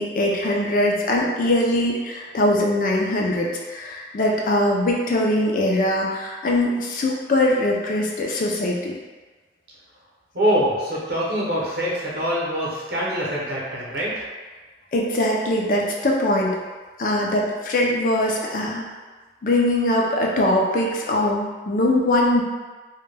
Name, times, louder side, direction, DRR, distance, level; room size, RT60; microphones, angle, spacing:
voice 1, 0.0-9.0 14.9-16.6 17.0-18.9 19.4-22.4, left 1 dB, 50° left, -1 dB, 0.4 m, -21 dB
voice 2, 10.3-14.2, equal, 60° right, -6 dB, 0.7 m, -24 dB
2.2 x 2.1 x 3.2 m, 1.3 s
head